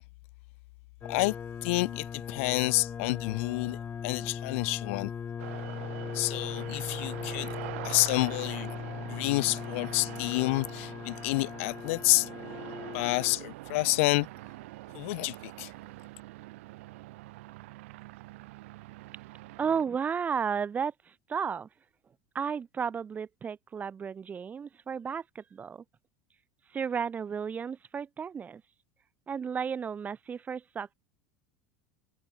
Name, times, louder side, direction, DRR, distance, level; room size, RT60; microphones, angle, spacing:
sound 1, 1.0-13.4, left 7 dB, 25° left, 0.8 m, -39 dB
voice 1, 1.6-3.8 4.0-5.1 6.1-7.5 7.8-8.8 9.1-12.3 12.9-14.3 14.9-15.7, left 24 dB, 75° left, 1.1 m, -29 dB
sound 2, 5.4-19.8, right 20 dB, 80° right, 1.0 m, -44 dB
voice 2, 19.6-21.7 22.3-25.8 26.7-28.6 29.3-30.9, right 6 dB, 25° right, 1.4 m, -33 dB
supercardioid pair, 130°, 7 cm